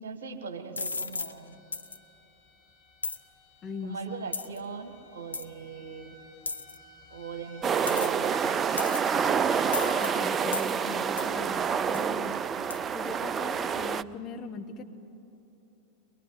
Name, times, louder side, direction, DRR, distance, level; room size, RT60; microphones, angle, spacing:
voice 1, 0.0-1.6 3.8-6.2 7.1-8.7, right 5 dB, 65° right, 5 dB, 2.0 m, -40 dB
sound 1, 0.8-1.3 1.7-2.0 3.0-3.2 4.3-4.6 5.3-5.5 6.5-6.8 7.9-8.3 8.8-9.2 9.7-10.1 10.5-10.7 11.2-11.3 11.9-12.1 12.7-12.8, left 3 dB, 80° left, 0.7 m, -34 dB
sound 2, 0.8-14.1, left 4 dB, 50° left, 6.2 m, -48 dB
voice 2, 3.6-4.0 10.0-12.3 12.9-14.8, left 4 dB, 30° left, 5 dB, 1.6 m, -40 dB
sound 3, 7.6-14.0, right 7 dB, 25° right, 0.5 m, -28 dB
23.0 x 22.0 x 9.3 m, 3.0 s
figure-of-eight pair, 90°, 0 cm